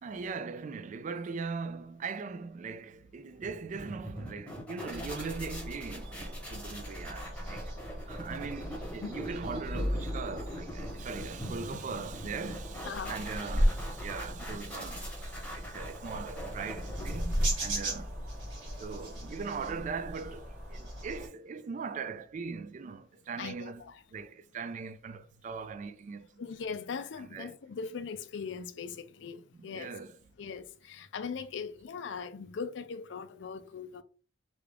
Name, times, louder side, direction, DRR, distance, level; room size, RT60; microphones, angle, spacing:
voice 1, 0.0-7.7 8.1-18.1 18.8-26.4 27.3-27.5 29.5-30.2, right 5 dB, 40° right, 0.3 m, -40 dB
sound 1, 3.4-17.8, equal, 5° left, 1.0 m, -43 dB
sound 2, 4.9-21.3, equal, 80° right, 1.6 m, -36 dB
voice 2, 12.9-13.2 23.4-24.0 26.4-30.0 30.4-34.0, left 5 dB, 70° left, 0.4 m, -40 dB
3.5 x 2.4 x 3.3 m
head